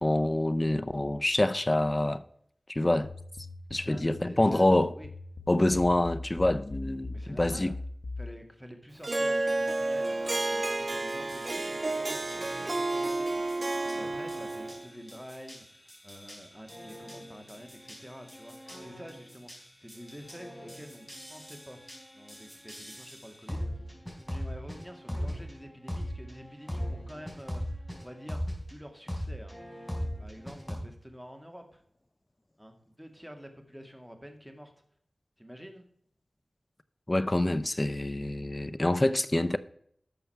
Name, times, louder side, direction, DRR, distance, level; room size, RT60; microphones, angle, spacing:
voice 1, 0.0-2.2 2.7-3.1 3.7-4.9 5.5-7.7 37.1-39.6, left 1 dB, 30° left, 0.6 m, -26 dB
sound 1, 3.0-8.3, left 2 dB, 85° left, 1.0 m, -40 dB
voice 2, 3.8-5.1 5.7-5.8 7.1-7.7 8.2-21.8 22.1-23.9 24.3-28.4 28.7-29.6 30.2-31.8 32.6-34.7 35.4-35.9, equal, 5° right, 2.1 m, -48 dB
Harp, 9.0-14.8, right 2 dB, 50° right, 0.5 m, -31 dB
sound 2, 11.1-28.7 29.1-30.8, equal, 10° left, 4.2 m, -41 dB
12.0 x 6.9 x 4.5 m
wide cardioid pair, 55°, 0 cm